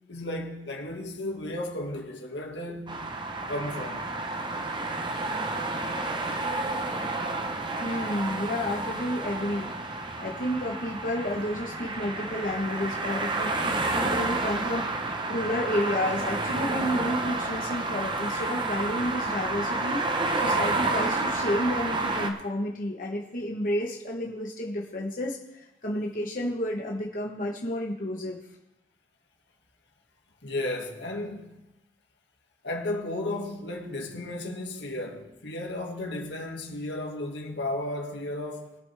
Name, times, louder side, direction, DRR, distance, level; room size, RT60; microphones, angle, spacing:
voice 1, 0.1-3.0 3.5-4.1 30.4-31.6 32.6-38.7, left 1 dB, 80° left, 2.0 m, -34 dB
sound 1, 2.9-22.3, right 2 dB, 25° right, 0.9 m, -30 dB
voice 2, 7.8-9.7 10.2-20.0 20.4-28.4, left 1 dB, 45° left, 1.1 m, -31 dB
21.5 x 7.8 x 3.4 m
head